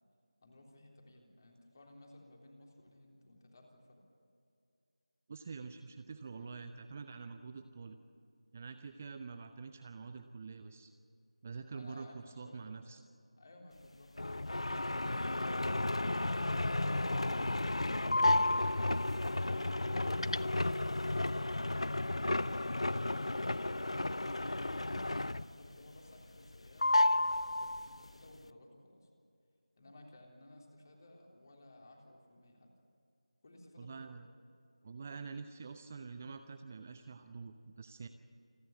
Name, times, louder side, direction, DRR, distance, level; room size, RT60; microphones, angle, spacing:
voice 1, 0.4-4.0 6.3-6.6 11.7-12.6 13.4-16.6 21.0-22.6 25.3-29.1 29.8-32.7 33.4-34.2, left 1 dB, 35° left, 1 dB, 3.5 m, -58 dB
voice 2, 5.3-8.0 8.5-10.9 11.4-13.0 33.8-34.3 34.8-38.1, right 5 dB, 20° right, 8 dB, 0.6 m, -46 dB
sound 1, 14.2-25.7 26.0-26.5 26.8-28.1, left 2 dB, 65° left, 0.5 m, -32 dB
28.5 x 11.0 x 9.9 m, 2.5 s
figure-of-eight pair, 165°, 3 cm